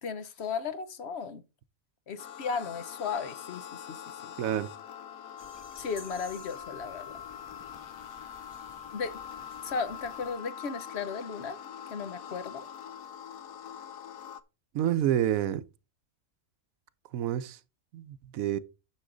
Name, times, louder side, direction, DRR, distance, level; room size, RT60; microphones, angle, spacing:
voice 1, 0.0-1.4 2.1-4.0 4.2-4.3 5.8-7.1 8.9-9.2 9.6-11.6 11.9-12.7, left 5 dB, 55° left, 1.1 m, -35 dB
sound 1, 2.2-14.4, left 9 dB, 75° left, 1.1 m, -44 dB
voice 2, 4.4-4.7 14.7-15.6 17.1-17.6 17.9-18.6, right 11 dB, 80° right, 1.1 m, -28 dB
sound 2, 5.4-10.4, left 3 dB, 25° left, 0.6 m, -54 dB
9.7 x 6.3 x 3.8 m
omnidirectional pair, 1.5 m